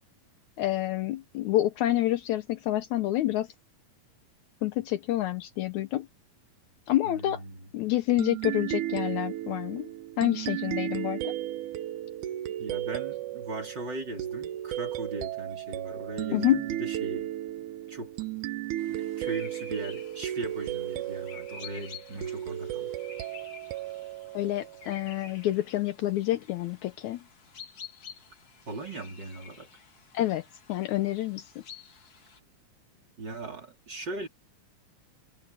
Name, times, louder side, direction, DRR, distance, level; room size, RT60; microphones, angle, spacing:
voice 1, 0.6-3.5 4.6-6.1 6.9-7.4 7.7-9.9 10.2-11.3 16.3-16.6 24.3-27.2 30.1-30.4 30.7-31.4, left 14 dB, 75° left, 2.0 m, -28 dB
voice 2, 7.0-7.7 12.6-17.3 17.9-18.1 18.9-22.9 28.7-29.7 33.2-34.3, right 2 dB, 30° right, 4.5 m, -38 dB
sound 1, 8.2-25.3, right 13 dB, 75° right, 2.3 m, -35 dB
sound 2, 18.8-32.4, left 6 dB, 50° left, 4.0 m, -50 dB
omnidirectional pair, 3.7 m